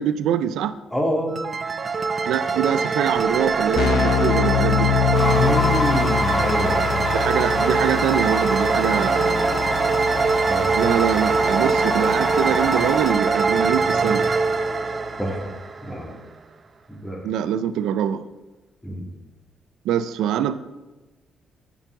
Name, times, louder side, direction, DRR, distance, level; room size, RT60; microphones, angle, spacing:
voice 1, 0.0-0.7 2.3-4.9 7.1-9.6 10.8-14.3 17.2-18.3 19.8-20.6, right 9 dB, 85° right, 13 dB, 0.4 m, -24 dB
voice 2, 0.9-1.4 5.3-7.0 10.4-10.7 15.2-15.4 15.8-16.1 16.9-17.3 18.8-19.1, equal, 10° left, 1 dB, 2.2 m, -27 dB
sound 1, 1.3-16.1, right 4 dB, 35° right, 0.6 m, -22 dB
Keyboard (musical), 3.2-3.3 3.5-14.1, left 11 dB, 70° left, 0.5 m, -27 dB
sound 2, 5.1-13.1, left 3 dB, 40° left, 0.9 m, -29 dB
7.2 x 5.3 x 7.0 m, 1.2 s
cardioid pair, 90°, 0 cm